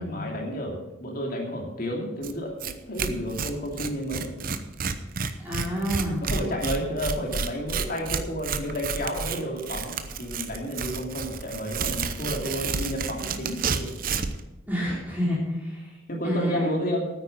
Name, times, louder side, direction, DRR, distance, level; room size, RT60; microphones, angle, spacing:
voice 1, 0.0-4.3 6.2-13.9 16.1-17.0, equal, 45° left, 0 dB, 2.7 m, -31 dB
Tearing, 2.2-2.3 2.6-2.7 3.0-14.4, right 5 dB, 45° right, 0.7 m, -30 dB
voice 2, 5.4-6.2 14.7-15.9 16.2-16.7, equal, 10° right, -6 dB, 3.5 m, -28 dB
9.5 x 9.1 x 7.4 m, 1.1 s
head